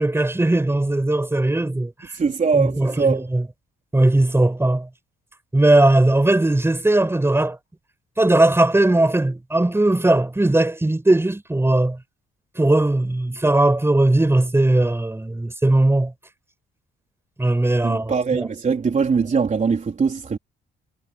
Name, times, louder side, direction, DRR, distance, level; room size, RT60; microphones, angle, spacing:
voice 1, 0.0-1.9 2.5-3.4 3.9-4.9 5.5-7.6 8.2-12.0 12.5-16.1 17.4-18.5, right 2 dB, 10° right, 6.5 m, -18 dB
voice 2, 2.1-3.2 17.8-20.4, right 5 dB, 40° right, 4.0 m, -21 dB
cardioid pair, 90°, 20 cm